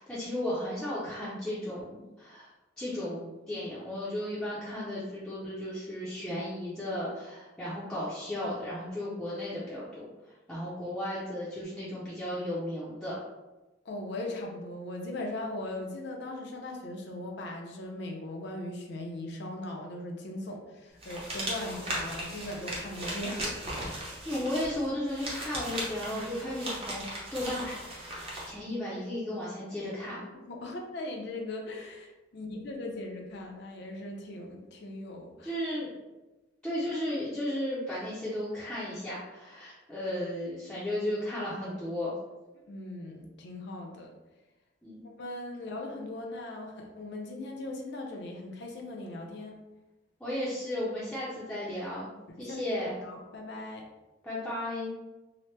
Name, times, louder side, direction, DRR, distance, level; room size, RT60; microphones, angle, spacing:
voice 1, 0.0-2.5 2.8-13.2 24.3-27.8 28.5-30.2 35.4-36.1 36.6-42.1 44.8-45.0 50.2-52.1 52.4-53.0 54.2-54.9, left 1 dB, 5° left, -10 dB, 0.5 m, -34 dB
voice 2, 13.8-24.2 30.3-35.5 42.6-44.1 45.0-49.6 52.3-53.8, left 1 dB, 65° left, 1 dB, 0.5 m, -39 dB
sound 1, 21.0-28.5, right 1 dB, 30° right, 0.7 m, -37 dB
2.9 x 2.0 x 3.2 m, 1.1 s
head